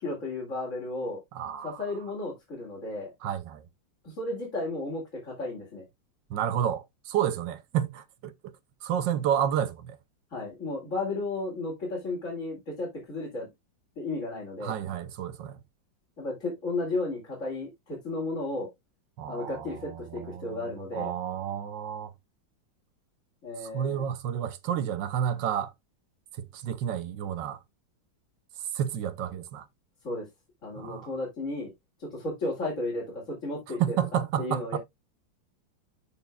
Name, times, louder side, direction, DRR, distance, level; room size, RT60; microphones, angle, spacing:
voice 1, 0.0-1.2 1.6-3.1 4.0-5.8 10.3-13.5 14.0-14.8 16.2-18.7 19.3-21.1 23.4-24.0 30.0-30.3 30.6-31.7 32.0-34.0 34.4-34.8, left 2 dB, 40° left, 2.7 m, -33 dB
voice 2, 1.3-1.9 3.2-3.6 6.3-8.3 8.8-10.0 14.6-15.6 19.2-22.1 23.6-25.7 26.4-27.6 28.7-29.7 30.8-31.1 33.8-34.8, right 9 dB, 75° right, 1.3 m, -30 dB
12.0 x 4.4 x 2.2 m
omnidirectional pair, 2.1 m